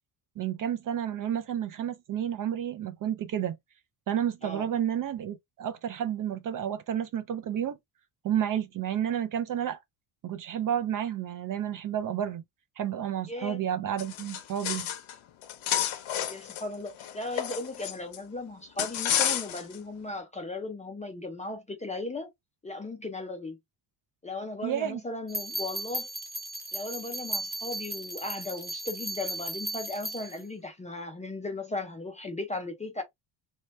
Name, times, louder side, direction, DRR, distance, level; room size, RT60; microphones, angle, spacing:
voice 1, 0.4-3.6 4.1-7.8 8.2-9.8 10.2-12.4 12.8-14.9 24.6-25.0, right 10 dB, 45° right, 0.4 m, -31 dB
voice 2, 13.3-13.6 16.3-22.3 22.6-23.6 24.2-26.1 26.7-33.0, left 2 dB, 15° left, 0.4 m, -37 dB
sound 1, 14.0-15.1 15.4-18.2 18.8-19.8, left 11 dB, 75° left, 0.9 m, -30 dB
sound 2, 25.3-30.4, right 1 dB, 20° right, 0.9 m, -36 dB
3.1 x 2.8 x 3.0 m
cardioid pair, 175°, 49 cm